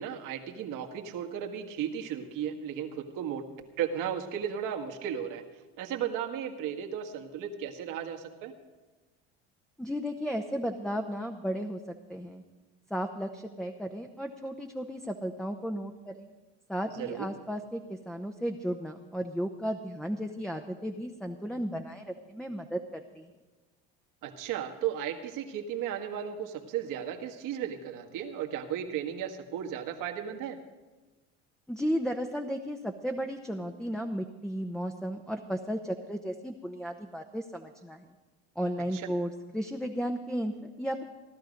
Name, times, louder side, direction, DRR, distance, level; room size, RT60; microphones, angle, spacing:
voice 1, 0.0-3.5 3.8-5.4 5.8-8.5 17.0-17.3 24.2-30.6 38.9-39.1, right 9 dB, 65° right, 4 dB, 1.8 m, -35 dB
voice 2, 9.8-12.4 12.9-16.3 16.7-23.3 31.7-38.1 38.6-41.0, equal, ahead, 4 dB, 0.9 m, -34 dB
17.0 x 12.0 x 5.2 m, 1.2 s
supercardioid pair, 80°, 34 cm